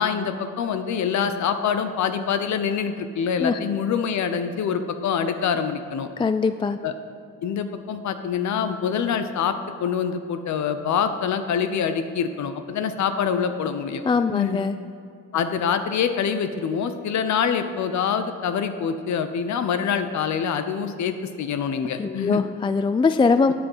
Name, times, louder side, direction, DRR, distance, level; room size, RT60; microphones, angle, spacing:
voice 1, 0.0-6.1 6.8-6.9 7.4-14.6 15.3-22.4, left 7 dB, 70° left, 9 dB, 0.9 m, -25 dB
voice 2, 6.2-6.8 14.1-14.8 22.0-23.5, left 4 dB, 15° left, 11 dB, 0.3 m, -21 dB
9.9 x 8.5 x 5.7 m, 2.4 s
cardioid pair, 90°, 30 cm